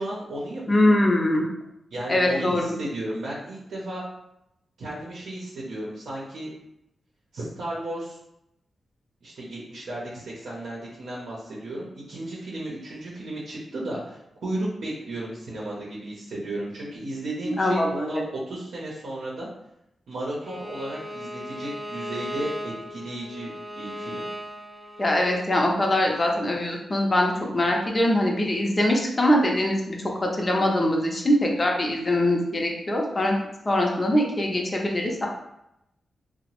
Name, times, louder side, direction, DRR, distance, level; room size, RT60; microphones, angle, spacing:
voice 1, 0.0-0.9 1.9-4.0 4.8-6.5 7.3-8.2 9.2-19.5 20.1-24.2, right 1 dB, 85° right, -5 dB, 0.6 m, -34 dB
voice 2, 0.7-1.4 2.1-2.8 17.4-18.2 25.0-33.4 33.7-35.3, left 1 dB, 30° left, 0 dB, 0.6 m, -23 dB
Bowed string instrument, 20.4-25.4, equal, 25° right, 0.4 m, -37 dB
2.9 x 2.0 x 2.9 m, 0.83 s
cardioid pair, 70°, 0 cm